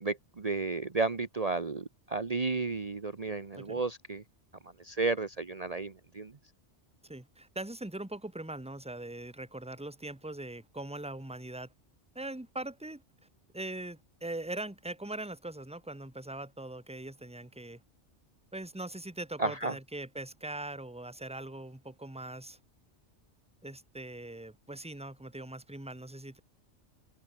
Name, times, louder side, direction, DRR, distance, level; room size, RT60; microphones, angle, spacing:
voice 1, 0.0-4.2 4.8-6.3 19.4-19.7, right 3 dB, 35° right, 1.2 m, -32 dB
voice 2, 7.0-11.7 12.1-13.0 13.5-17.8 18.5-22.6 23.6-26.4, right 2 dB, 5° right, 1.7 m, -41 dB
omnidirectional pair, 1.2 m